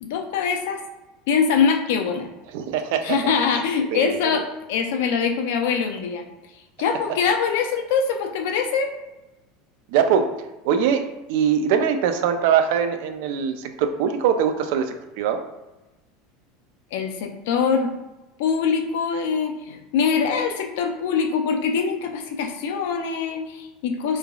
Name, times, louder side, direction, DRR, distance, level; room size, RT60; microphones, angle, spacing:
voice 1, 0.0-0.8 1.3-2.3 3.0-4.4 4.7-6.2 6.8-8.9 16.9-17.9 18.4-24.2, left 6 dB, 75° left, 4 dB, 0.4 m, -23 dB
voice 2, 2.5-3.6 3.9-4.4 9.9-10.3 10.6-11.0 11.3-15.4, right 7 dB, 70° right, 8 dB, 0.3 m, -22 dB
3.2 x 2.3 x 2.3 m, 1.0 s
supercardioid pair, 140°, 0 cm